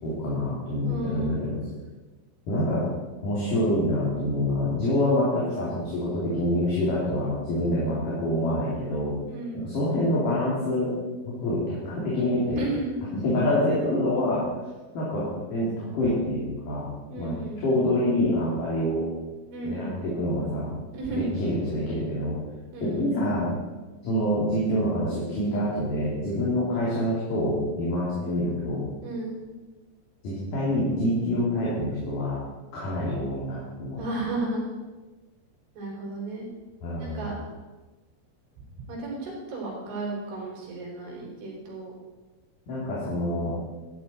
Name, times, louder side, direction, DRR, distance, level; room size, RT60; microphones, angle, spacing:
voice 1, 0.0-1.6 2.5-2.9 3.2-9.1 9.5-10.9 11.4-12.6 13.1-14.4 14.9-19.0 19.6-20.7 21.1-22.4 22.8-23.5 24.0-28.8 30.2-32.4 32.7-34.0 36.8-37.3 42.7-43.5, left 1 dB, 45° left, -7 dB, 4.0 m, -26 dB
voice 2, 0.9-1.4 9.3-9.7 12.6-12.9 17.1-17.6 19.5-20.0 20.9-21.4 22.7-23.1 29.0-29.4 34.0-34.6 35.8-36.5 36.9-37.4 38.9-41.9, right 2 dB, 70° right, -4 dB, 5.9 m, -33 dB
13.0 x 12.0 x 4.4 m, 1.2 s
omnidirectional pair, 5.7 m